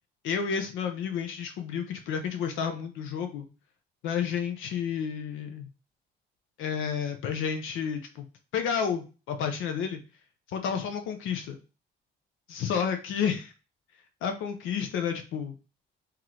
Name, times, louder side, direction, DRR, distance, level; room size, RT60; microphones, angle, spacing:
voice 1, 0.2-3.5 4.0-5.7 6.6-8.3 8.5-10.0 10.5-11.6 12.5-13.5 14.2-15.5, left 7 dB, 90° left, 6 dB, 0.6 m, -31 dB
3.7 x 3.0 x 3.1 m, 0.33 s
cardioid pair, 90°, 20 cm